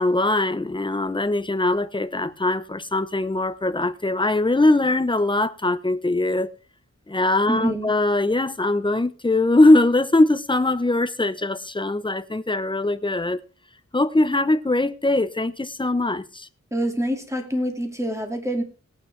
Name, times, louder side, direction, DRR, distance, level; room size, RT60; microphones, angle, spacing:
voice 1, 0.0-6.5 7.1-13.4 13.9-16.5, left 2 dB, 15° left, 0.8 m, -21 dB
voice 2, 7.5-8.0 16.7-18.6, right 1 dB, 10° right, 2.3 m, -26 dB
19.0 x 8.9 x 3.3 m
wide cardioid pair, 95°, 30 cm